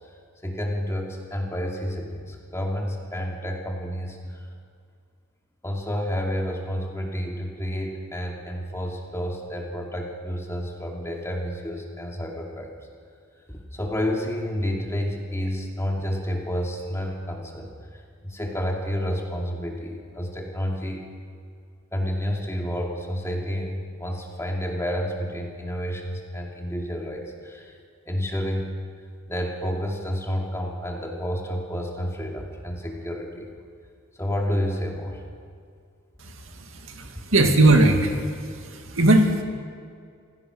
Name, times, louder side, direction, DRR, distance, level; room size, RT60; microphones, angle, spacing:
voice 1, 0.4-4.4 5.6-12.7 13.5-21.0 21.9-27.8 28.1-28.7 29.3-33.5 34.2-35.2, equal, 15° left, 0 dB, 2.6 m, -30 dB
voice 2, 36.9-38.1 38.7-39.4, right 2 dB, 65° right, 3 dB, 2.3 m, -18 dB
27.0 x 16.5 x 6.3 m, 2.2 s
head